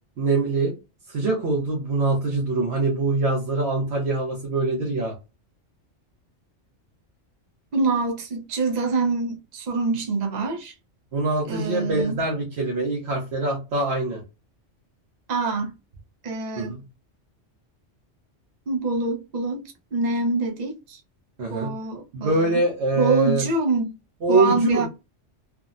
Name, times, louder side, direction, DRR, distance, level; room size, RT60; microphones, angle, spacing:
voice 1, 0.2-0.7 1.1-5.1 11.1-14.2 16.6-16.8 21.4-21.7 22.1-23.4 24.2-24.9, right 2 dB, 65° right, 1.1 m, -24 dB
voice 2, 7.7-10.7 11.5-12.2 15.3-15.7 16.2-16.8 18.7-21.0 21.5-22.6 22.9-24.0 24.3-24.9, right 3 dB, 45° right, 0.7 m, -25 dB
3.4 x 2.0 x 2.4 m
omnidirectional pair, 1.2 m